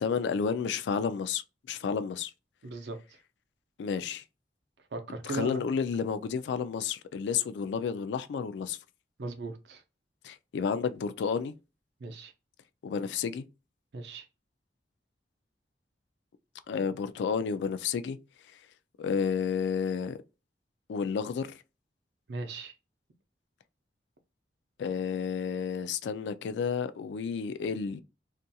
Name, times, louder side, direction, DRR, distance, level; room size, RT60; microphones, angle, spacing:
voice 1, 0.0-1.4 1.7-2.3 3.8-4.2 5.2-8.8 10.2-11.5 12.8-13.4 16.7-18.2 19.0-20.2 20.9-21.6 24.8-28.0, left 6 dB, 75° left, 0.3 m, -31 dB
voice 2, 2.6-3.0 4.9-5.7 9.2-9.8 12.0-12.3 13.9-14.2 22.3-22.7, right 2 dB, 70° right, 0.5 m, -37 dB
2.7 x 2.4 x 2.2 m
head